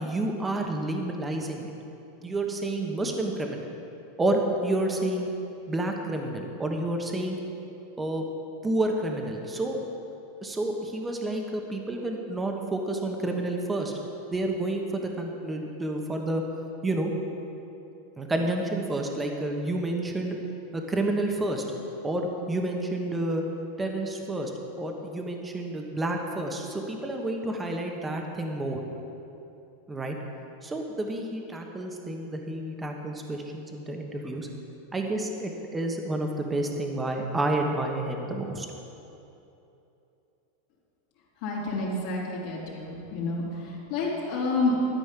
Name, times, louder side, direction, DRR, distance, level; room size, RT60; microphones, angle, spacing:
voice 1, 0.0-1.7 2.2-3.6 4.2-5.3 5.7-7.4 8.0-8.2 8.6-9.8 10.4-13.9 14.3-16.4 16.8-17.1 18.2-20.4 20.7-21.6 22.0-23.4 23.8-24.5 24.8-28.8 29.9-30.2 30.6-34.5 34.9-38.7, right 2 dB, 10° right, 2 dB, 1.2 m, -29 dB
voice 2, 41.4-44.9, left 2 dB, 60° left, -5 dB, 3.1 m, -29 dB
13.0 x 5.3 x 9.1 m, 2.9 s
supercardioid pair, 140°, 0 cm